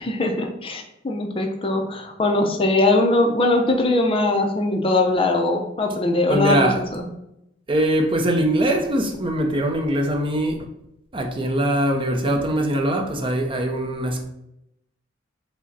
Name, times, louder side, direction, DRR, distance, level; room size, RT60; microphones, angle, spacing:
voice 1, 0.0-7.1, left 2 dB, 30° left, 0.5 m, -21 dB
voice 2, 6.3-6.8 7.7-10.7 11.1-14.3, right 1 dB, 30° right, 0.5 m, -22 dB
4.8 x 2.1 x 4.0 m
head